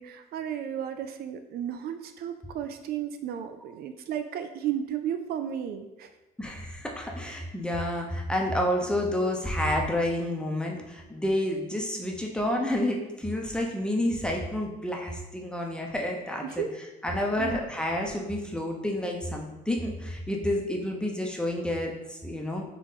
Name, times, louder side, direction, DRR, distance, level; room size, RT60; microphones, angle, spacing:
voice 1, 0.0-6.1 16.4-16.7 17.4-17.6, right 9 dB, 65° right, 8 dB, 0.4 m, -34 dB
voice 2, 6.4-16.6 17.0-22.6, left 1 dB, 5° left, 0 dB, 0.7 m, -29 dB
3.7 x 3.1 x 4.0 m, 1.0 s
cardioid pair, 110°, 17 cm